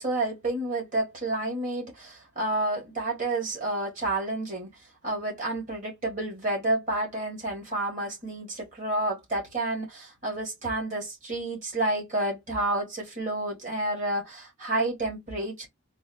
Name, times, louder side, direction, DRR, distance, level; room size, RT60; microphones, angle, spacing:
voice 1, 0.0-4.7 5.0-15.7, right 2 dB, 35° right, 2.1 m, -30 dB
4.0 x 2.2 x 2.6 m
head